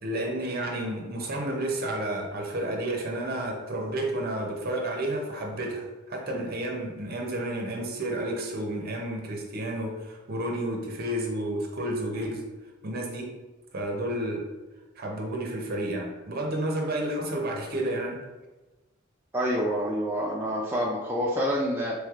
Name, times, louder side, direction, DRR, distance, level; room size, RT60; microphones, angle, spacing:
voice 1, 0.0-12.4 12.8-13.3 13.7-14.4 15.0-18.2, right 1 dB, 50° right, 1 dB, 0.6 m, -31 dB
voice 2, 19.3-21.9, equal, 10° right, -4 dB, 0.3 m, -27 dB
3.2 x 3.1 x 2.4 m, 1.2 s
head